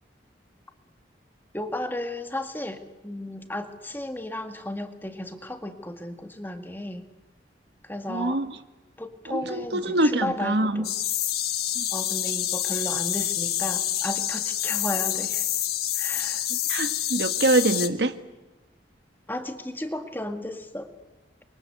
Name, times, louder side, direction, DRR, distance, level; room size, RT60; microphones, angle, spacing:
voice 1, 1.5-7.0 7.8-8.4 9.0-11.0 11.9-15.5 15.9-16.5 19.3-20.9, left 1 dB, 10° left, 6 dB, 2.0 m, -34 dB
voice 2, 8.1-8.5 9.3-10.8 11.8-11.9 16.5-18.1, right 2 dB, 75° right, 10 dB, 1.5 m, -24 dB
sound 1, 10.8-17.9, left 12 dB, 60° left, 1.5 m, -27 dB
29.5 x 23.5 x 8.2 m, 1.1 s
head